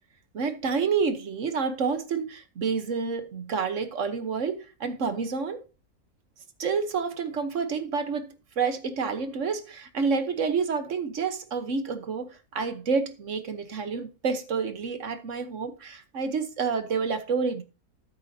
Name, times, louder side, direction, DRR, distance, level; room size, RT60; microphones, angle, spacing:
voice 1, 0.3-5.6 6.6-8.3 8.6-17.6, right 5 dB, 55° right, 1.3 m, -29 dB
13.0 x 7.5 x 2.7 m
omnidirectional pair, 1.6 m